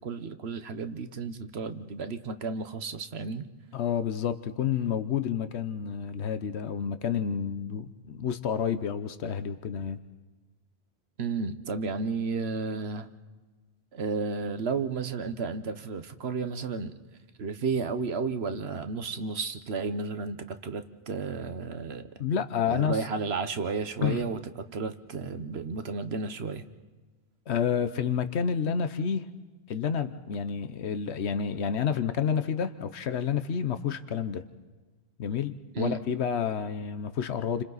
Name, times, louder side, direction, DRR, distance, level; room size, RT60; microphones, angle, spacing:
voice 1, 0.0-3.5 11.2-13.1 13.9-16.9 17.4-22.1 22.6-26.7 35.7-36.0, right 4 dB, 75° right, 10 dB, 1.3 m, -32 dB
voice 2, 3.7-10.0 22.2-23.0 24.0-24.2 27.5-29.3 29.7-34.4 35.2-37.6, left 7 dB, 90° left, 11 dB, 1.1 m, -29 dB
30.0 x 25.5 x 4.1 m, 1.3 s
omnidirectional pair, 1.1 m